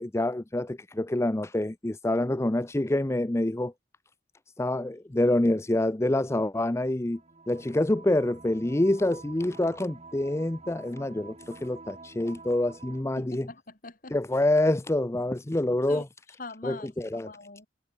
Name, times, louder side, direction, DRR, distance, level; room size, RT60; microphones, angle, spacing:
voice 1, 0.0-3.7 4.6-7.2 7.5-13.5 14.1-16.1 16.6-17.3, left 1 dB, 15° left, 0.5 m, -26 dB
sound 1, 7.1-13.0, right 3 dB, 35° right, 1.9 m, -49 dB
voice 2, 13.2-14.1 15.9-16.0 16.4-17.7, left 2 dB, 50° left, 2.9 m, -43 dB
head